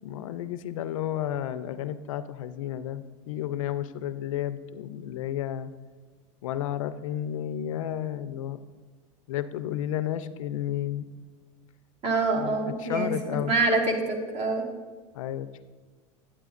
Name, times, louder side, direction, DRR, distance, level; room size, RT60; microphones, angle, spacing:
voice 1, 0.0-5.7 6.4-8.6 9.3-11.1 12.4-13.5 15.1-15.6, left 11 dB, 85° left, 13 dB, 0.4 m, -32 dB
voice 2, 12.0-14.6, right 3 dB, 40° right, 1 dB, 1.7 m, -26 dB
9.0 x 8.6 x 2.5 m, 1.4 s
hypercardioid pair, 100°, 16 cm